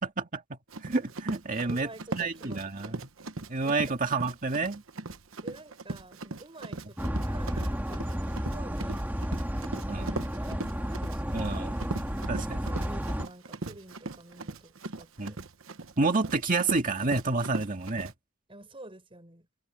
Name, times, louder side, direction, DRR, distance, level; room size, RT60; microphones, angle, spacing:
voice 1, 0.0-1.9 2.1-3.0 3.5-4.8 9.9-10.1 11.3-11.8 12.3-12.6 15.2-15.3 16.0-18.1, right 3 dB, 40° right, 2.0 m, -29 dB
Run, 0.7-18.1, right 3 dB, 80° right, 1.1 m, -39 dB
voice 2, 1.6-3.0 3.6-3.8 5.4-9.1 10.0-11.6 12.7-15.4 18.5-19.5, right 2 dB, 25° right, 6.1 m, -49 dB
sound 1, 7.0-13.3, equal, 10° right, 2.1 m, -32 dB
head